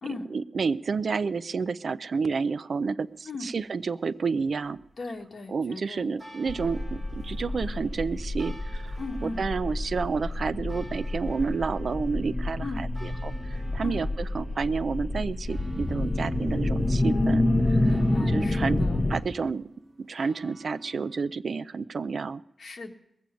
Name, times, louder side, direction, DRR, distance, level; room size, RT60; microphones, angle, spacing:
voice 1, 0.3-4.8 5.5-17.8 18.2-18.8 19.1-19.7 20.0-22.4, right 5 dB, 65° right, 15 dB, 0.4 m, -30 dB
sound 1, 3.0-21.3, equal, 20° right, 2.9 m, -53 dB
voice 2, 5.0-6.1 9.0-9.4 12.6-12.9 13.8-14.0 17.8-19.0 22.6-22.9, left 3 dB, 65° left, 3 dB, 1.7 m, -38 dB
sound 2, 6.5-19.2, left 1 dB, 20° left, 1.2 m, -28 dB
21.5 x 8.4 x 5.1 m, 0.81 s
wide cardioid pair, 115°, 0 cm